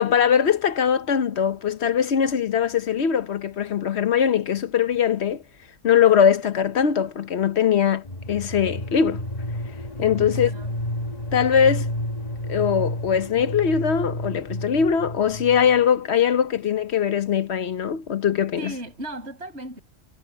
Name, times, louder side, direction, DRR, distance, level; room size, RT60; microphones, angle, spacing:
voice 1, 0.0-5.4 5.8-9.2 10.0-10.5 11.3-11.9 12.5-18.7, left 8 dB, 60° left, 1.1 m, -21 dB
sound 1, 8.0-15.9, left 1 dB, 35° left, 1.4 m, -31 dB
voice 2, 10.2-10.7 18.6-19.8, right 1 dB, 60° right, 6.5 m, -36 dB
omnidirectional pair, 1.3 m